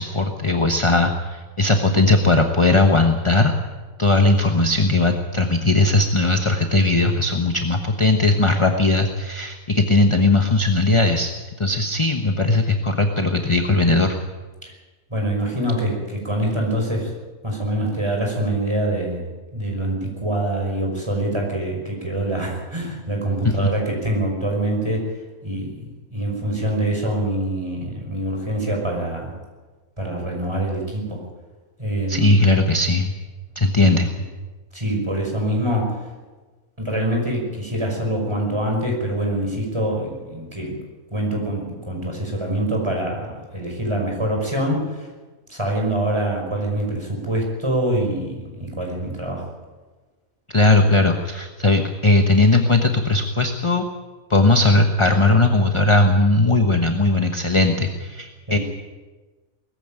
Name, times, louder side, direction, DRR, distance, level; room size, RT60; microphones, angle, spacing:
voice 1, 0.0-3.5 4.0-11.3 11.6-14.1 23.4-23.7 32.1-33.1 33.5-34.1 50.5-53.8 54.3-58.6, left 2 dB, 25° left, 5 dB, 1.1 m, -18 dB
voice 2, 15.1-17.1 17.4-19.2 19.5-25.1 25.4-29.4 30.0-31.2 31.8-32.5 33.8-33.9 34.7-36.0 36.8-40.8 41.1-45.1 45.5-49.5 58.5-58.6, right 1 dB, 20° right, 0 dB, 5.8 m, -25 dB
20.0 x 15.0 x 9.0 m, 1.3 s
omnidirectional pair, 1.5 m